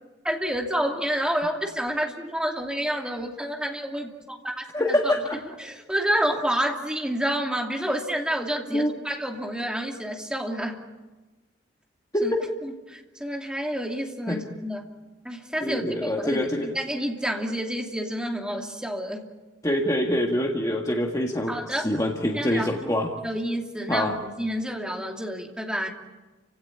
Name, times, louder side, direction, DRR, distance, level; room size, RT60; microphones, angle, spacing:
voice 1, 0.2-5.1 5.6-10.8 12.2-12.3 12.6-14.8 15.2-19.3 21.5-21.9 22.3-22.9 23.2-25.9, equal, 5° right, 1 dB, 2.7 m, -29 dB
voice 2, 4.7-5.4 8.7-8.9 12.1-12.4 14.3-14.4 15.6-16.7 19.6-23.1 23.9-24.1, left 1 dB, 20° left, 0 dB, 1.7 m, -25 dB
29.5 x 17.0 x 9.8 m, 1.2 s
head